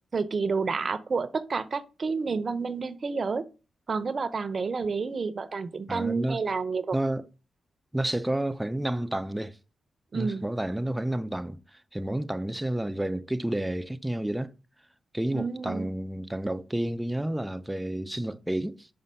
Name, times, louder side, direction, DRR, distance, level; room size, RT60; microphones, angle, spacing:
voice 1, 0.1-3.5 3.9-7.0 10.1-10.4 15.3-15.9, right 4 dB, 50° right, 0.8 m, -30 dB
voice 2, 5.9-6.4 6.9-7.3 7.9-9.6 10.1-14.5 15.1-18.9, right 1 dB, 10° right, 0.6 m, -30 dB
5.6 x 5.5 x 5.4 m
cardioid pair, 60°, 0 cm